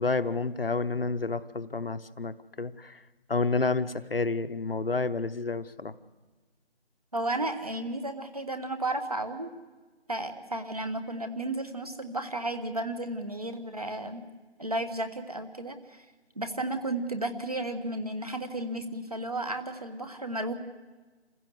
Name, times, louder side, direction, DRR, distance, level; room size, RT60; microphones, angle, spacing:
voice 1, 0.0-3.0 3.3-5.9, left 3 dB, 60° left, 12 dB, 1.0 m, -30 dB
voice 2, 7.1-9.5 10.1-14.2 14.6-16.0 16.4-20.5, right 1 dB, 35° right, 8 dB, 1.2 m, -33 dB
27.5 x 15.5 x 8.0 m, 1.3 s
figure-of-eight pair, 175°, 33 cm